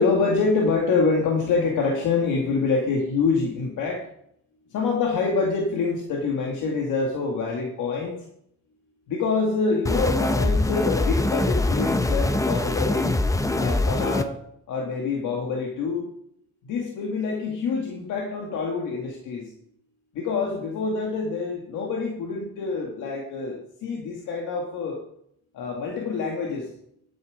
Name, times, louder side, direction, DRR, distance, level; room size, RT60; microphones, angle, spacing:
voice 1, 0.0-4.1 4.7-8.2 9.1-13.1 13.5-14.4 14.7-16.1 16.6-19.5 20.1-25.0 25.5-26.7, left 4 dB, 85° left, -1 dB, 2.0 m, -26 dB
sound 1, 9.9-14.2, left 2 dB, 10° left, 0.8 m, -23 dB
12.0 x 7.4 x 4.9 m, 0.71 s
cardioid pair, 90°, 30 cm